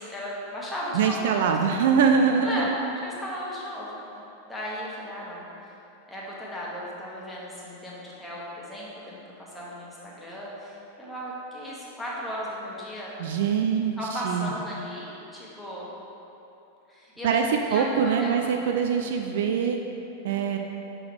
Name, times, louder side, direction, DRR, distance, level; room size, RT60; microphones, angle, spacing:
voice 1, 0.0-1.4 1.8-1.9 2.4-2.7 3.0-4.0 4.5-5.5 6.1-13.2 14.0-15.9 16.9-17.4 17.7-18.7 19.4-19.6 20.3-20.5, equal, 5° left, -6 dB, 1.3 m, -36 dB
voice 2, 0.9-2.7 13.2-14.5 17.2-17.4 17.7-19.8 20.2-20.6, right 6 dB, 55° right, 4 dB, 0.3 m, -23 dB
6.0 x 3.8 x 4.6 m, 2.9 s
figure-of-eight pair, 90°, 0 cm